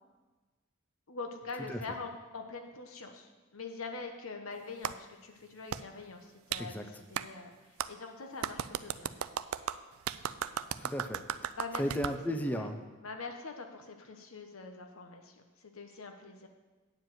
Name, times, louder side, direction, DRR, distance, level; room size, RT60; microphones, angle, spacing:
voice 1, 1.1-7.5 7.9-9.2 10.5-10.6 11.6-11.9 12.3-12.7 13.0-16.5, left 4 dB, 85° left, 5 dB, 1.1 m, -44 dB
Clapping, 4.8-5.0 5.7-5.8 6.5-6.6 7.2-7.3 7.8-7.9 8.4-12.2, right 9 dB, 90° right, 0.4 m, -35 dB
voice 2, 10.8-12.8, equal, 10° left, 5 dB, 0.5 m, -35 dB
9.3 x 4.8 x 7.7 m, 1.2 s
head